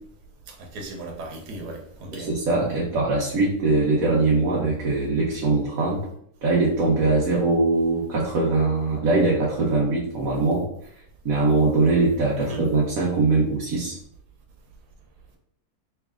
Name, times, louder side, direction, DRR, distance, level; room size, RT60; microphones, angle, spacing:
voice 1, 0.5-2.3 12.4-12.7, right 2 dB, 90° right, 2 dB, 1.4 m, -37 dB
voice 2, 2.1-6.1 6.4-10.6 11.2-14.0, right 3 dB, 65° right, -4 dB, 1.2 m, -22 dB
3.3 x 3.2 x 3.6 m, 0.69 s
omnidirectional pair, 1.7 m